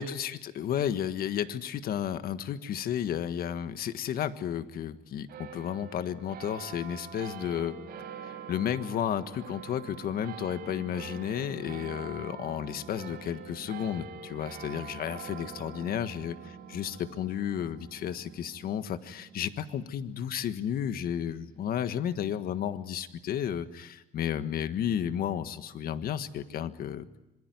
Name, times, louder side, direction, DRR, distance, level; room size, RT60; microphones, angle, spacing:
voice 1, 0.0-7.8 8.2-16.4 16.7-27.2, left 9 dB, 60° left, 11 dB, 1.6 m, -32 dB
sound 1, 5.3-22.0, right 6 dB, 70° right, 4.2 m, -45 dB
26.0 x 22.5 x 9.5 m, 0.95 s
cardioid pair, 110°, 17 cm